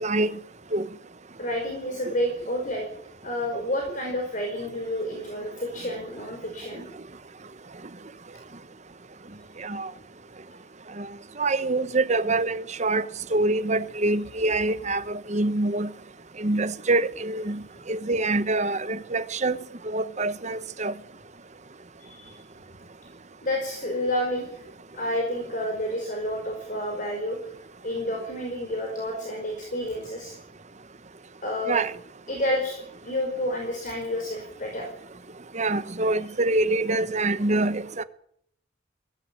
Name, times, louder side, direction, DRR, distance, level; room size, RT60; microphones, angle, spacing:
voice 1, 0.0-0.3 0.7-0.9 9.6-9.9 11.0-11.1 11.4-13.0 13.3-15.9 16.4-19.6 19.8-20.9 31.7-31.9 35.5-38.0, right 2 dB, 35° right, 1.1 m, -25 dB
voice 2, 1.4-2.9 3.2-6.8 10.5-10.6 22.0-22.4 23.4-24.7 24.9-27.5 27.8-30.4 31.4-31.8 32.3-34.9, left 1 dB, 40° left, 5.4 m, -30 dB
22.0 x 16.5 x 9.1 m
head